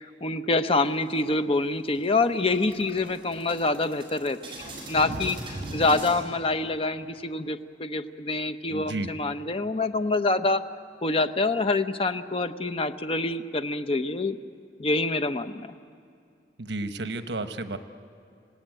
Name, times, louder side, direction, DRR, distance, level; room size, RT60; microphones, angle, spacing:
voice 1, 0.0-4.4 4.9-10.6 11.0-14.4 14.8-15.7, left 2 dB, 35° left, 9 dB, 0.8 m, -26 dB
sound 1, 0.8-1.6 2.0-2.1 2.4-6.2, right 1 dB, 30° right, 7.1 m, -39 dB
voice 2, 8.7-9.1 16.6-17.8, right 2 dB, 80° right, 9 dB, 1.2 m, -32 dB
26.5 x 18.5 x 9.2 m, 2.5 s
head